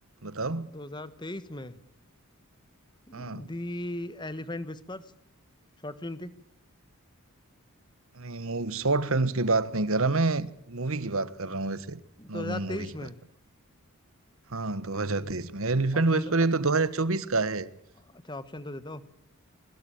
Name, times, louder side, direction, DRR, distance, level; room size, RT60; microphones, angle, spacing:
voice 1, 0.2-0.7 3.1-3.5 8.1-12.0 12.3-12.9 14.5-17.7, right 3 dB, 70° right, 1.3 m, -27 dB
voice 2, 0.7-1.8 3.1-5.0 5.8-6.3 12.2-13.2 15.9-16.4 18.1-19.0, left 1 dB, 20° left, 1.3 m, -37 dB
22.0 x 20.5 x 8.7 m
head